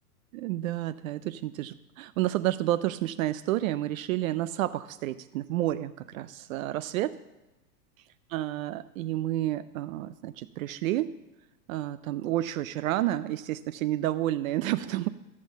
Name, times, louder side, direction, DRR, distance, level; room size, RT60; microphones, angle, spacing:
voice 1, 0.3-7.2 8.3-11.1 11.7-15.1, right 14 dB, 60° right, 15 dB, 0.5 m, -30 dB
14.0 x 5.5 x 7.1 m, 1.0 s
hypercardioid pair, 130°, 48 cm